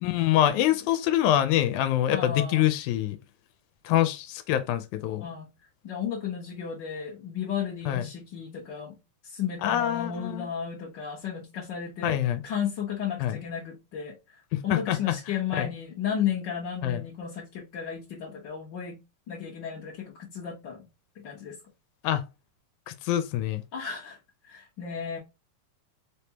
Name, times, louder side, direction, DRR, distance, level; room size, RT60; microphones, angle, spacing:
voice 1, 0.0-3.2 3.9-5.2 7.9-8.1 9.6-10.5 12.0-12.4 13.2-13.4 14.5-15.2 15.6-15.7 16.8-17.0 22.0-22.2 22.9-23.6, left 12 dB, 85° left, 2.1 m, -25 dB
voice 2, 2.1-2.7 5.2-5.5 5.8-9.0 9.2-19.0 19.3-20.9 21.1-21.6 23.7-24.2 24.4-25.2, left 8 dB, 55° left, 1.3 m, -34 dB
4.7 x 3.4 x 2.8 m
omnidirectional pair, 3.4 m